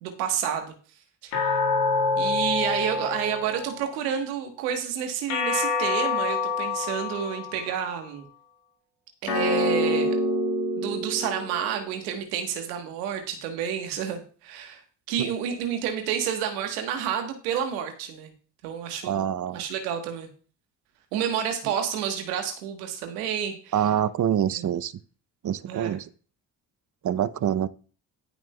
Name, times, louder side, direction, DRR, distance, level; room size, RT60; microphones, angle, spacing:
voice 1, 0.0-0.7 1.2-1.6 2.2-8.2 9.2-10.2 10.7-14.8 15.1-18.3 18.6-19.3 19.5-20.3 21.1-23.7 24.5-24.7 25.7-26.0, right 8 dB, 85° right, 1.3 m, -30 dB
sound 1, 1.3-3.9 5.3-7.8 9.3-11.9, left 3 dB, 85° left, 1.8 m, -26 dB
voice 2, 19.0-19.6 23.7-24.9 25.4-26.1 27.0-27.7, right 9 dB, 40° right, 0.7 m, -25 dB
17.0 x 6.0 x 2.3 m
hypercardioid pair, 45°, 47 cm